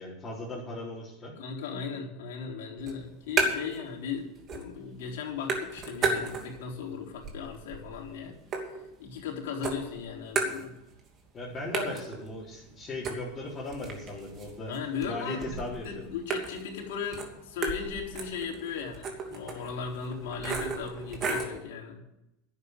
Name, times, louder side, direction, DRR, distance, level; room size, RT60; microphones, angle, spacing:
voice 1, 0.0-1.3 11.3-14.7 15.1-16.1, left 2 dB, 25° left, -7 dB, 3.9 m, -37 dB
voice 2, 1.4-8.4 8.7-10.8 14.7-22.0, left 6 dB, 75° left, -3 dB, 4.0 m, -37 dB
sound 1, 2.8-3.9 4.2-4.8 5.1-6.7 7.1-9.3 9.6-11.1 11.3-11.4 11.7-21.6, right 4 dB, 35° right, 2.6 m, -34 dB
11.0 x 8.4 x 8.2 m, 0.88 s
supercardioid pair, 120°, 0 cm